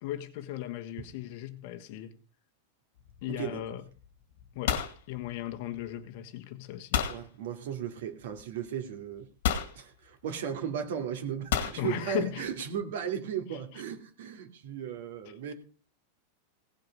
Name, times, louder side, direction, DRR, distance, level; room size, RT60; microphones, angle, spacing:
voice 1, 0.0-2.2 3.2-3.8 4.5-7.1 11.8-12.5 13.5-13.8, left 13 dB, 45° left, 1.4 m, -37 dB
sound 1, 3.0-3.4 3.6-4.1 4.3-5.9 6.9-7.2 8.4-8.5 9.4-9.8 11.5-11.8, left 9 dB, 65° left, 2.2 m, -30 dB
voice 2, 3.3-3.6 7.1-9.3 9.7-15.5, right 8 dB, 65° right, 2.6 m, -36 dB
17.0 x 7.7 x 5.4 m
supercardioid pair, 170°, 0 cm